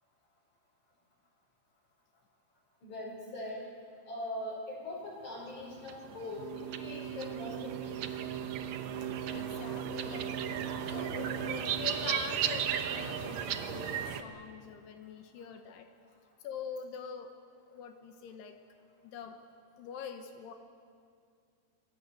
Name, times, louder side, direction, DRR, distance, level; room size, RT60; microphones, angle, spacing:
voice 1, 2.8-3.7 4.1-8.1, left 1 dB, 45° left, -6 dB, 6.9 m, -41 dB
sound 1, 5.6-14.2, right 9 dB, 80° right, 1.5 m, -35 dB
voice 2, 9.3-10.3 10.6-15.9 16.4-17.3 17.7-18.6 19.0-19.4 19.8-20.5, left 6 dB, 80° left, 5 dB, 3.3 m, -44 dB
27.5 x 21.0 x 7.9 m, 2.3 s
omnidirectional pair, 4.7 m